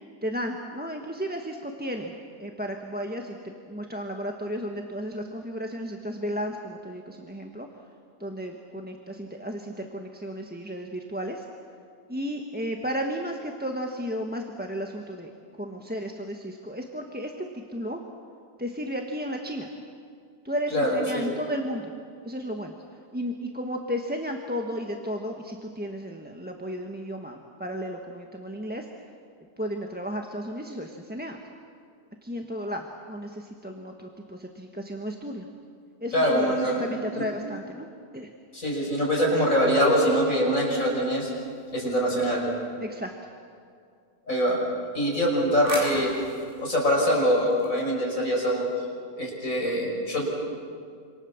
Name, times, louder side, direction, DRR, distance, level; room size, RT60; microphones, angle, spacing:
voice 1, 0.2-2.1 2.4-7.7 8.2-11.5 12.1-15.3 15.6-18.0 18.6-19.7 20.4-21.9 22.2-22.7 23.1-28.9 29.6-31.4 32.2-35.4 36.0-37.9 38.1-38.3 42.8-43.1, equal, 5° right, 2 dB, 1.3 m, -33 dB
voice 2, 20.7-21.3 36.1-36.9 37.2-37.3 38.5-41.3 41.7-42.5 44.3-44.6 44.9-46.2 46.6-48.7 49.1-50.3, equal, 55° left, -2 dB, 6.3 m, -24 dB
sound 1, 40.9-42.6 44.9-48.2, equal, 30° right, 7.7 m, -40 dB
27.0 x 27.0 x 7.3 m, 2.3 s
omnidirectional pair, 1.7 m